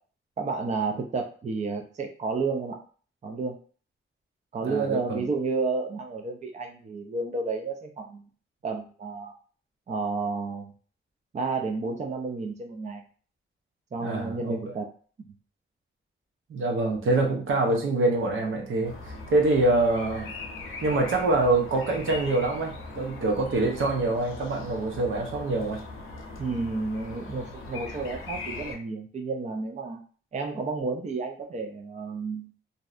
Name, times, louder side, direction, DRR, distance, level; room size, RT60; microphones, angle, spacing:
voice 1, 0.4-2.8 3.2-3.6 4.5-8.2 8.6-9.3 9.9-10.7 11.3-13.0 13.9-14.9 26.4-30.0 30.3-32.5, right 4 dB, 35° right, 3 dB, 0.4 m, -31 dB
voice 2, 4.6-5.2 14.0-14.7 16.5-20.3 20.8-25.8, right 2 dB, 75° right, 1 dB, 0.7 m, -25 dB
sound 1, 18.8-28.8, left 3 dB, 85° left, 0.6 m, -40 dB
2.6 x 2.1 x 2.4 m, 0.41 s
cardioid pair, 70°, 21 cm